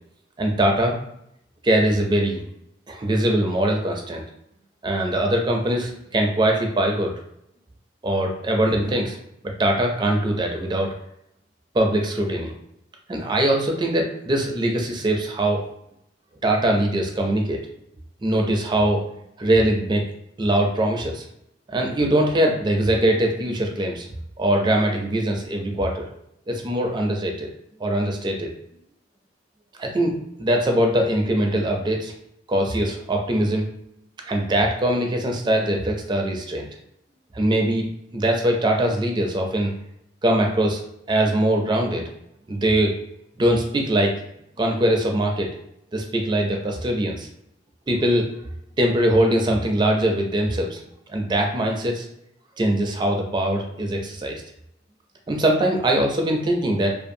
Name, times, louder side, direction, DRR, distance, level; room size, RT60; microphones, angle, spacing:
voice 1, 0.4-1.0 1.6-2.4 2.9-4.2 4.8-7.1 8.0-9.2 9.4-10.9 11.7-12.5 13.1-15.6 16.4-17.6 18.2-19.1 19.4-20.0 20.4-21.2 21.7-24.1 24.4-26.1 26.5-27.5 27.8-28.5 29.8-32.1 32.5-33.7 34.3-36.7 37.3-37.8 38.1-39.7 40.2-40.8 41.1-42.1 42.5-43.0 43.4-44.1 44.6-45.5 45.9-47.3 47.9-48.3 48.8-50.8 51.1-52.1 52.6-54.4 55.3-56.9, right 1 dB, 25° right, 1 dB, 0.4 m, -22 dB
2.5 x 2.3 x 2.6 m, 0.77 s
head